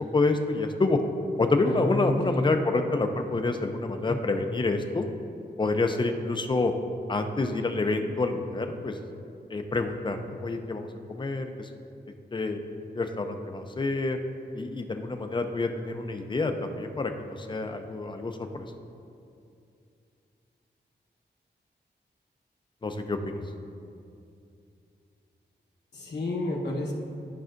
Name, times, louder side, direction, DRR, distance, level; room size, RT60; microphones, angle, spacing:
voice 1, 0.1-1.0 1.4-5.0 5.6-6.7 7.1-9.0 9.5-11.7 12.3-12.6 12.9-14.2 14.5-18.7 22.8-23.4, left 3 dB, 25° left, 6 dB, 0.5 m, -28 dB
voice 2, 1.6-2.5 4.0-4.2 25.9-26.9, left 1 dB, 70° left, -2 dB, 1.1 m, -31 dB
12.0 x 5.3 x 2.5 m, 2.5 s
wide cardioid pair, 130°, 18 cm